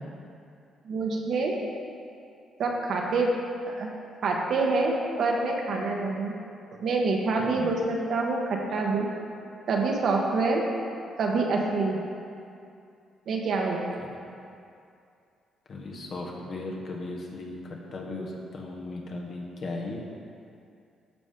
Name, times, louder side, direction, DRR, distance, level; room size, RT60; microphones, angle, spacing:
voice 1, 0.8-1.6 2.6-3.3 3.7-3.9 4.2-6.3 6.8-9.1 9.7-10.6 11.2-12.0 13.3-13.9, right 3 dB, 65° right, 0 dB, 1.2 m, -26 dB
voice 2, 7.4-7.7 14.0-14.1 15.7-17.6 17.9-20.1, left 2 dB, 55° left, 0 dB, 1.4 m, -36 dB
13.0 x 5.2 x 3.7 m, 2.5 s
cardioid pair, 90°, 0 cm